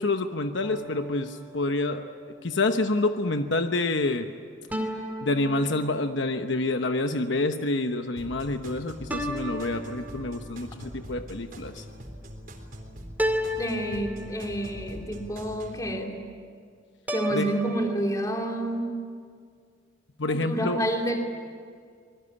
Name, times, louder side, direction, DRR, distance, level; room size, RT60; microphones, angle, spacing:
voice 1, 0.0-4.3 5.2-11.8 17.3-17.5 20.2-20.8, left 2 dB, 70° left, 7 dB, 1.1 m, -27 dB
sound 1, 0.6-2.3 4.7-6.4 9.1-10.6 13.2-14.8 17.1-18.0, equal, 10° right, 2.4 m, -33 dB
sound 2, 8.2-15.8, equal, 45° right, 3.8 m, -42 dB
voice 2, 13.6-16.2 17.1-18.9 20.2-21.2, right 1 dB, 20° left, 2 dB, 3.1 m, -29 dB
26.0 x 21.0 x 9.9 m, 2.1 s
head